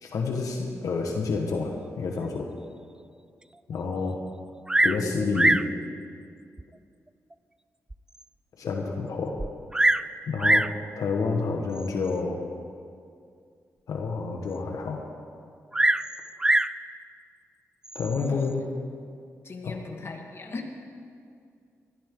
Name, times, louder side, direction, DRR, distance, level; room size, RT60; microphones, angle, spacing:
voice 1, 0.0-2.5 3.7-4.2 4.8-5.6 8.6-9.4 10.3-10.7 11.0-12.4 13.9-15.0 17.9-18.6 19.6-19.8, left 4 dB, 80° left, 1 dB, 1.5 m, -29 dB
Bird vocalization bird call bird song, 4.7-5.1 5.3-5.7 6.6-6.7 7.3-7.4 7.9-8.0 8.2-8.3 9.4-10.1 10.4-10.8 11.8-12.1 15.7-16.8 17.8-18.3, right 1 dB, 15° right, 0.4 m, -23 dB
voice 2, 18.2-18.5 19.4-20.7, left 3 dB, 45° left, 2 dB, 1.9 m, -38 dB
20.0 x 14.0 x 3.9 m, 2.3 s
cardioid pair, 75°, 6 cm